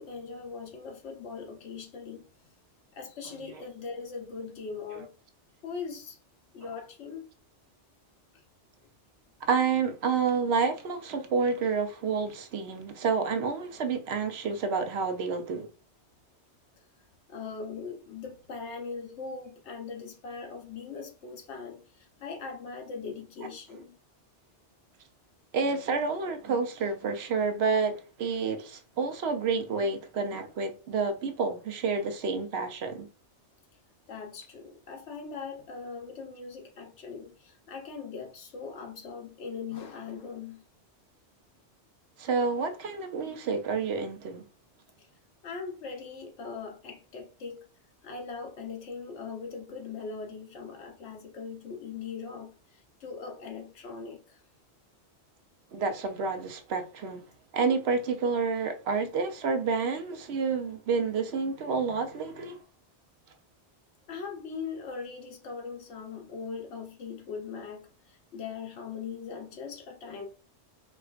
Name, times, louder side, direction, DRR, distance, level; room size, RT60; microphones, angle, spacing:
voice 1, 0.0-2.3 2.9-5.1 5.6-6.2 6.5-7.3 8.3-8.4 17.3-24.0 34.1-40.6 45.0-45.1 45.4-47.7 48.0-54.4 64.1-70.3, left 5 dB, 80° left, 1.1 m, -40 dB
voice 2, 9.4-15.7 25.5-33.1 42.2-44.4 55.7-57.2 57.5-62.6, right 5 dB, 70° right, 0.8 m, -29 dB
4.3 x 2.3 x 2.3 m
omnidirectional pair, 1.2 m